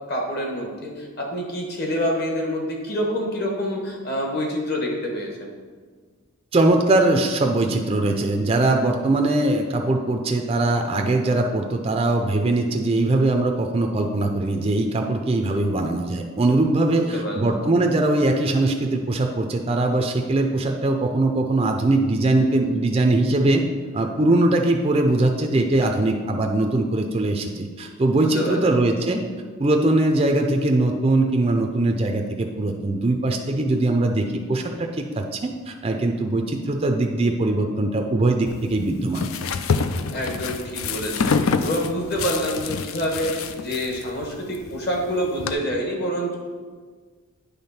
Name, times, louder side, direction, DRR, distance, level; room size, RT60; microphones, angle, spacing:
voice 1, 0.1-5.5 16.9-17.6 28.1-28.7 40.1-41.3 41.6-46.3, equal, 45° left, 0 dB, 1.4 m, -27 dB
voice 2, 6.5-23.6 23.9-29.2 29.6-39.3, right 2 dB, 25° right, 3 dB, 0.4 m, -21 dB
sound 1, 38.5-45.5, left 5 dB, 75° left, 0.4 m, -27 dB
8.7 x 3.5 x 5.7 m, 1.5 s
head